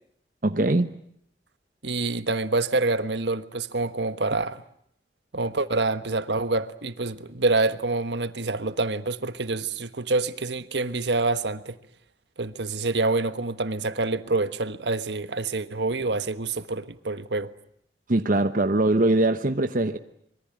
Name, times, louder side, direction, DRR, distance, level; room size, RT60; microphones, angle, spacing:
voice 1, 0.4-1.0 18.1-20.0, right 2 dB, 50° right, 1.0 m, -22 dB
voice 2, 1.8-4.6 5.3-11.8 12.4-17.5, right 3 dB, 80° right, 1.3 m, -26 dB
25.5 x 22.5 x 8.8 m
head